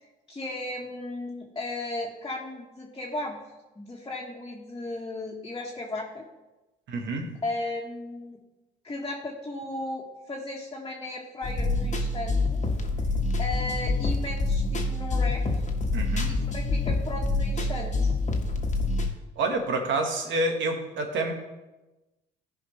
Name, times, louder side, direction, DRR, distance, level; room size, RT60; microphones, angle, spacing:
voice 1, 0.3-3.4 3.7-6.2 7.4-8.4 8.8-12.6 13.4-15.4 16.3-18.2, left 2 dB, 20° left, -3 dB, 1.5 m, -35 dB
voice 2, 6.9-7.3 15.9-16.3 19.4-21.3, right 2 dB, 65° right, 3 dB, 1.6 m, -28 dB
sound 1, 11.4-19.1, left 2 dB, 35° left, 1.4 m, -26 dB
15.0 x 5.0 x 3.2 m, 1.1 s
supercardioid pair, 70°, 21 cm